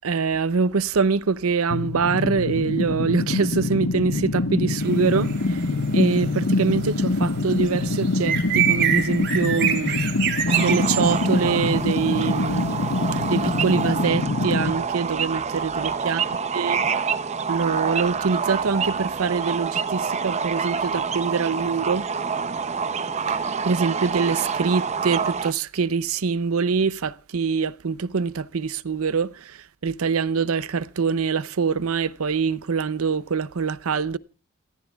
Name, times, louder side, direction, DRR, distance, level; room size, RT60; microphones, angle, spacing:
voice 1, 0.0-5.6 5.9-10.0 10.5-12.7 13.1-16.2 16.5-16.8 17.5-22.0 23.3-34.2, right 5 dB, 75° right, 0.6 m, -24 dB
sound 1, 1.7-14.7, left 2 dB, 75° left, 1.0 m, -25 dB
sound 2, 4.8-14.1, right 9 dB, 55° right, 3.3 m, -29 dB
sound 3, 10.5-25.5, right 6 dB, 30° right, 0.6 m, -27 dB
29.0 x 14.0 x 2.3 m
head